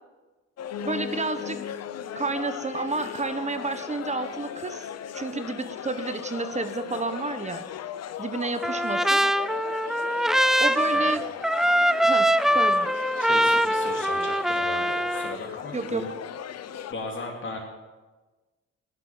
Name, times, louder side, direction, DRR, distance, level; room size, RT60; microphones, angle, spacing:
sound 1, 0.6-16.9, left 9 dB, 60° left, 0.8 m, -38 dB
Piano, 0.7-9.8 10.2-11.4 11.6-11.7 12.0-12.1 12.3-12.4 13.0-13.1, left 7 dB, 85° left, 1.1 m, -43 dB
voice 1, 0.8-1.8 2.1-4.9 5.1-7.7 8.2-9.2 10.6-11.2 12.0-12.9 15.7-16.1, right 3 dB, 25° right, 9 dB, 1.3 m, -30 dB
Trumpet, 8.6-15.4, equal, ahead, 0.4 m, -23 dB
voice 2, 13.2-16.1 16.9-17.6, left 3 dB, 40° left, 0 dB, 2.9 m, -36 dB
14.5 x 11.5 x 7.4 m, 1.2 s
cardioid pair, 90°, 30 cm